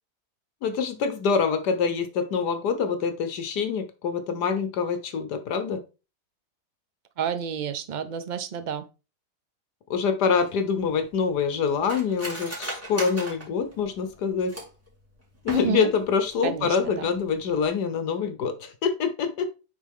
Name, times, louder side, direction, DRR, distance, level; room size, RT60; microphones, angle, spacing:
voice 1, 0.6-5.8 9.9-14.5 15.4-19.5, left 6 dB, 80° left, 1.5 m, -25 dB
voice 2, 7.2-8.9 15.5-15.9 16.4-17.0, right 7 dB, 50° right, 0.5 m, -30 dB
Cutlery silverware, 10.4-14.9 15.3-16.0 16.4-16.5 16.8-17.2 17.5-17.7, right 1 dB, 10° right, 2.1 m, -38 dB
9.5 x 3.9 x 3.5 m
omnidirectional pair, 1.8 m